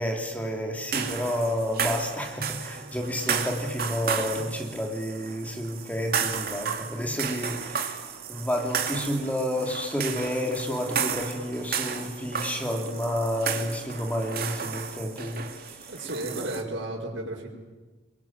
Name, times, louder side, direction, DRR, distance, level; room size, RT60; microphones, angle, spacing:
voice 1, 0.0-15.9, equal, 10° left, 2 dB, 3.2 m, -30 dB
sound 1, 0.9-16.6, right 6 dB, 50° right, 2.5 m, -33 dB
voice 2, 15.9-17.5, right 1 dB, 85° right, -2 dB, 5.1 m, -33 dB
25.5 x 23.0 x 9.1 m, 1.3 s
head